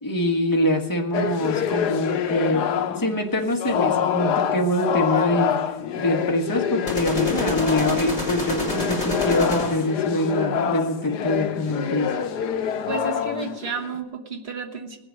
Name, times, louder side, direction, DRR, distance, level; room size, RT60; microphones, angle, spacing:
voice 1, 0.0-12.1, left 1 dB, 10° left, 2 dB, 1.3 m, -24 dB
sound 1, 1.1-3.2 3.6-8.2 8.6-14.0, left 8 dB, 70° left, 1.3 m, -26 dB
sound 2, 6.9-10.0, left 3 dB, 35° left, 3.6 m, -28 dB
voice 2, 12.9-15.0, right 4 dB, 40° right, 3 dB, 1.5 m, -31 dB
19.5 x 7.9 x 6.3 m, 0.98 s
omnidirectional pair, 1.8 m